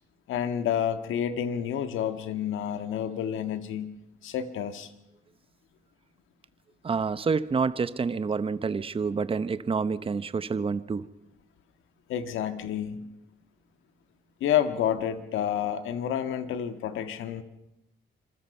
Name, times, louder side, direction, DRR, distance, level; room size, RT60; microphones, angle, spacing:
voice 1, 0.3-3.9 4.2-4.9 12.1-13.1 14.4-17.4, left 9 dB, 85° left, 9 dB, 1.7 m, -29 dB
voice 2, 6.8-11.0, right 5 dB, 30° right, 14 dB, 0.9 m, -28 dB
27.0 x 21.0 x 5.6 m, 0.88 s
cardioid pair, 90°, 20 cm